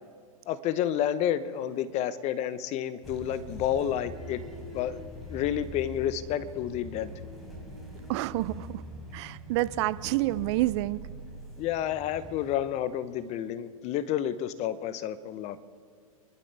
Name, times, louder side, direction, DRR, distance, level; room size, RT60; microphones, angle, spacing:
voice 1, 0.5-4.4 4.7-5.0 5.3-7.1 11.6-15.6, left 10 dB, 35° left, 14 dB, 0.9 m, -30 dB
sound 1, 3.0-12.5, equal, ahead, 4.2 m, -43 dB
voice 2, 8.1-8.8 9.1-11.0, right 17 dB, 50° right, 17 dB, 0.5 m, -28 dB
27.5 x 12.0 x 3.4 m, 2.3 s
hypercardioid pair, 110°, 19 cm